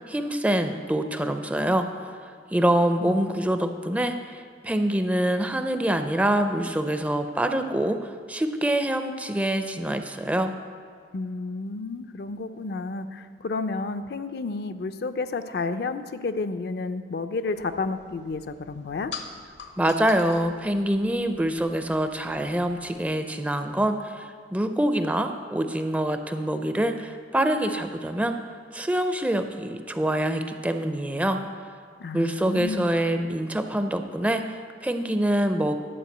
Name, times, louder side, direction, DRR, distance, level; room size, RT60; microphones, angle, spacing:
voice 1, 0.1-2.1 2.5-10.5 19.8-28.4 28.7-31.4 32.1-35.8, right 1 dB, 10° right, 7 dB, 0.4 m, -25 dB
voice 2, 11.1-19.1 32.0-32.9, left 3 dB, 60° left, 10 dB, 0.4 m, -31 dB
sound 1, 17.5-23.0, left 4 dB, 75° left, 0.8 m, -45 dB
11.0 x 4.8 x 7.8 m, 2.1 s
head